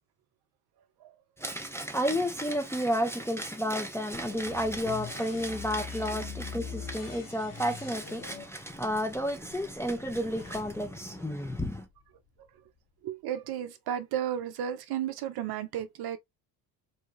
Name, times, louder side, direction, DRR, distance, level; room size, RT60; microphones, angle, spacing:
voice 1, 1.4-11.8, equal, 5° left, 0.6 m, -31 dB
sound 1, 4.1-12.0, left 5 dB, 40° left, 1.2 m, -44 dB
voice 2, 13.0-16.2, right 10 dB, 50° right, 0.6 m, -33 dB
2.8 x 2.2 x 3.0 m
hypercardioid pair, 70°, 50 cm